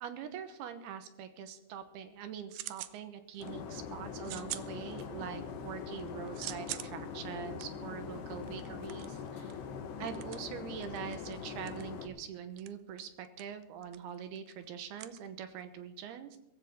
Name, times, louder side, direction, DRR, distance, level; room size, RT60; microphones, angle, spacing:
voice 1, 0.0-9.6 10.0-16.4, right 8 dB, 70° right, 8 dB, 2.7 m, -43 dB
sound 1, 1.8-3.0 3.3-3.8 4.2-5.4 5.8-15.8, right 15 dB, 90° right, 2.1 m, -46 dB
sound 2, 3.4-12.1, left 6 dB, 75° left, 3.5 m, -42 dB
22.5 x 15.0 x 3.6 m, 0.86 s
omnidirectional pair, 5.2 m